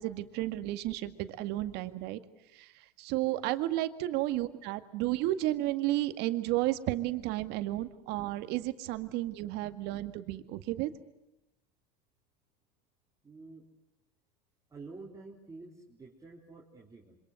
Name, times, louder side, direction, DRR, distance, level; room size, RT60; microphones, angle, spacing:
voice 1, 0.0-2.2 2.5-10.9, right 15 dB, 55° right, 10 dB, 2.0 m, -32 dB
voice 2, 13.2-13.7 14.7-17.2, right 3 dB, 15° right, -3 dB, 4.1 m, -49 dB
27.0 x 25.5 x 7.9 m, 0.93 s
hypercardioid pair, 90°, 21 cm